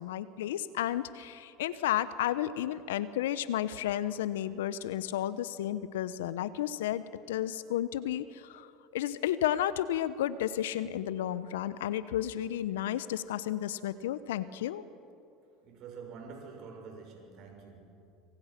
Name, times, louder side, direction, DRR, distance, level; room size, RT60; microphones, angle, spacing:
voice 1, 0.0-8.7 8.9-14.8, left 12 dB, 80° left, 15 dB, 1.0 m, -32 dB
voice 2, 15.6-18.1, right 5 dB, 55° right, 2 dB, 7.2 m, -47 dB
26.5 x 26.5 x 6.1 m, 2.6 s
hypercardioid pair, 80°, 0 cm